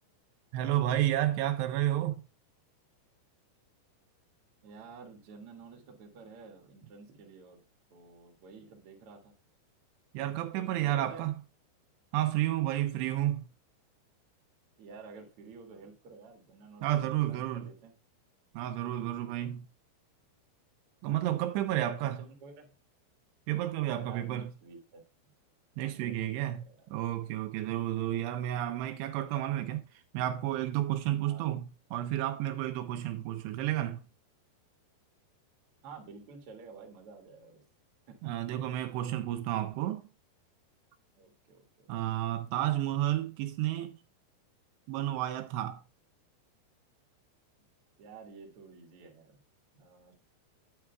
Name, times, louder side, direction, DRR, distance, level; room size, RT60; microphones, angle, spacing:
voice 1, 0.5-2.3 10.1-11.3 12.1-13.4 16.8-17.7 18.5-19.7 21.0-22.2 23.5-24.5 25.8-26.6 26.9-29.9 30.1-34.0 38.2-40.0 41.9-43.9 44.9-45.8, right 13 dB, 80° right, 2.6 m, -31 dB
voice 2, 4.6-7.6 7.9-9.3 10.6-11.3 14.8-17.9 21.3-22.7 24.0-25.0 25.8-26.9 31.2-31.5 33.1-33.4 35.8-37.6 38.1-38.6 41.1-41.9 47.6-47.7 48.0-49.4 49.7-50.1, right 4 dB, 60° right, 1.5 m, -51 dB
9.5 x 8.7 x 2.2 m
omnidirectional pair, 5.1 m